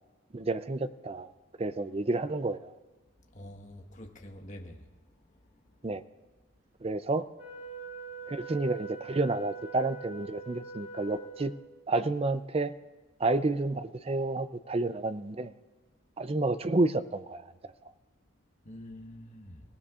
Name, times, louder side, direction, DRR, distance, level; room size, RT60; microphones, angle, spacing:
voice 1, 0.3-1.3 1.6-2.8 5.8-6.0 6.8-7.3 8.3-11.5 11.9-12.7 13.2-15.5 16.2-17.4, right 2 dB, 30° right, 0.5 m, -30 dB
voice 2, 3.3-4.8 18.6-19.6, left 1 dB, 35° left, 1.4 m, -46 dB
Wind instrument woodwind instrument, 7.4-11.7, right 5 dB, 70° right, 6.2 m, -44 dB
30.0 x 17.0 x 2.5 m
head